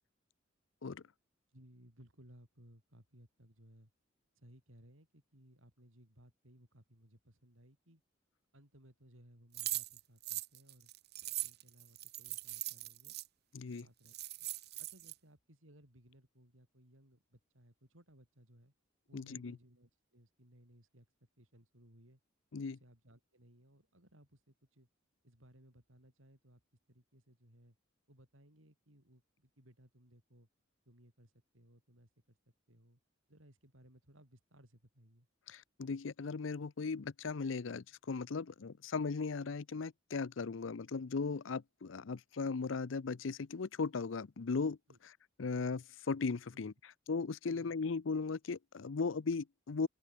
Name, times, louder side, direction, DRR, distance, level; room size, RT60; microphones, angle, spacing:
voice 1, 1.5-3.9 4.4-8.0 8.5-10.9 11.4-13.2 13.6-14.5 14.8-18.7 19.1-21.1 21.4-22.2 22.7-24.9 25.2-26.6 26.9-27.8 28.1-30.5 30.9-32.4 32.7-33.0 33.3-35.3 44.9-45.0 46.5-46.6 47.5-47.7, equal, 80° right, 7.8 m, -63 dB
sound 1, 9.5-13.3 13.8-13.9 14.1-15.1, right 16 dB, 55° right, 1.5 m, -41 dB
voice 2, 13.5-13.9 19.1-19.5 22.5-22.8 35.5-44.8 45.4-46.7 47.1-49.9, left 4 dB, 70° left, 0.6 m, -37 dB
open air
head